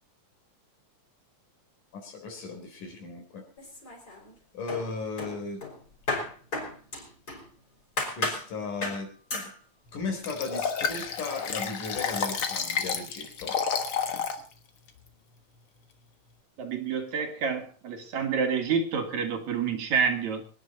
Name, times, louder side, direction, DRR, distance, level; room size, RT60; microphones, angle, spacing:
voice 1, 1.9-3.4 4.5-5.6 8.2-9.5 9.9-13.6, left 4 dB, 85° left, 3 dB, 5.4 m, -36 dB
sound 1, 3.6-4.3 4.7-7.5 8.0-8.5 8.8-9.0 9.3-9.5, left 2 dB, 30° left, 5.6 m, -33 dB
Liquid, 10.2-14.4 14.9-15.0, left 6 dB, 50° left, 2.0 m, -30 dB
voice 2, 16.6-20.4, right 6 dB, 65° right, 5 dB, 3.1 m, -28 dB
25.0 x 10.0 x 4.1 m, 0.38 s
omnidirectional pair, 3.6 m